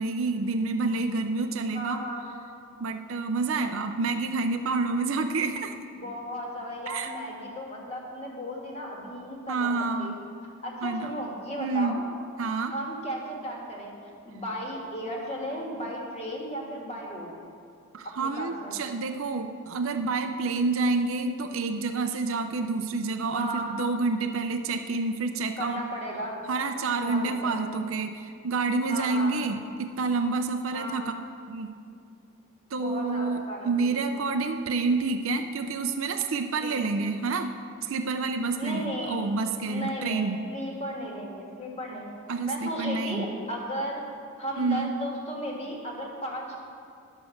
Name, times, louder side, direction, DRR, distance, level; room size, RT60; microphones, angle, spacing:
voice 1, 0.0-2.0 2.8-5.8 6.9-7.1 9.5-10.2 10.8-11.1 11.6-12.0 12.4-12.7 17.9-25.8 26.5-31.0 31.5-31.7 32.7-37.5 37.8-40.4 42.3-43.3 44.6-44.9, right 3 dB, 65° right, 6 dB, 0.5 m, -28 dB
voice 2, 1.7-2.3 6.0-10.1 10.6-12.0 12.7-17.3 18.2-18.7 23.3-23.7 25.6-26.4 27.0-27.7 28.9-29.4 30.7-31.0 32.7-33.9 36.6-36.9 38.6-39.3 39.7-42.1 42.4-44.0 44.4-46.6, equal, 30° left, -2 dB, 1.6 m, -35 dB
11.0 x 7.0 x 6.4 m, 2.4 s
head